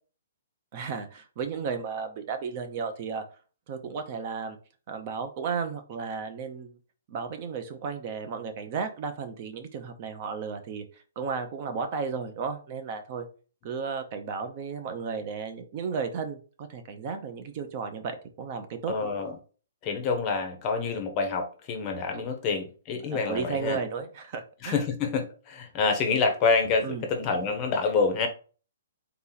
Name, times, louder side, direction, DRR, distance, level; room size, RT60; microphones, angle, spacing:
voice 1, 0.7-3.2 3.7-4.6 4.9-6.8 7.1-13.3 13.6-18.9 23.1-24.8 26.8-27.1, right 5 dB, 30° right, 7 dB, 0.5 m, -34 dB
voice 2, 18.9-19.3 19.8-23.8 24.6-28.3, left 4 dB, 20° left, 5 dB, 0.7 m, -27 dB
4.1 x 2.9 x 3.8 m, 0.37 s
hypercardioid pair, 170°, 0 cm